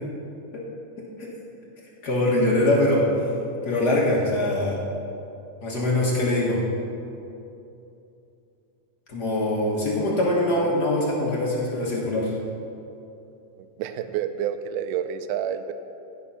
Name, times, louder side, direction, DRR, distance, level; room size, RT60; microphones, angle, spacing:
voice 1, 2.0-3.0 3.6-4.8 5.6-6.6 9.1-12.3, left 1 dB, 50° left, -4 dB, 1.1 m, -23 dB
voice 2, 13.8-15.7, right 9 dB, 80° right, 9 dB, 2.0 m, -28 dB
16.0 x 5.4 x 5.6 m, 2.8 s
omnidirectional pair, 3.8 m